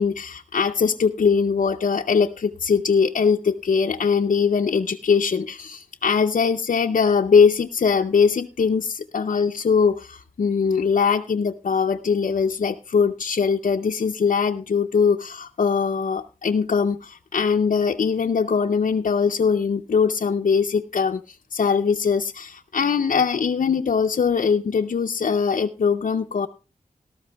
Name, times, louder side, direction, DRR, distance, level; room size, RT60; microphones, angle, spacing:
voice 1, 0.0-26.5, left 6 dB, 65° left, 3 dB, 0.5 m, -21 dB
18.0 x 13.0 x 2.2 m, 0.32 s
wide cardioid pair, 100°, 14 cm